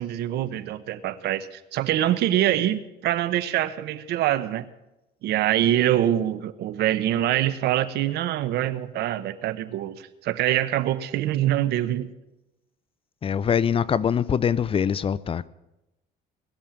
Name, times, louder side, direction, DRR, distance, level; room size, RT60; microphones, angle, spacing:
voice 1, 0.0-4.7 5.2-12.1, right 12 dB, 75° right, 1.0 m, -24 dB
voice 2, 13.2-15.5, left 7 dB, 35° left, 0.5 m, -23 dB
20.0 x 7.4 x 8.7 m
cardioid pair, 110°, 17 cm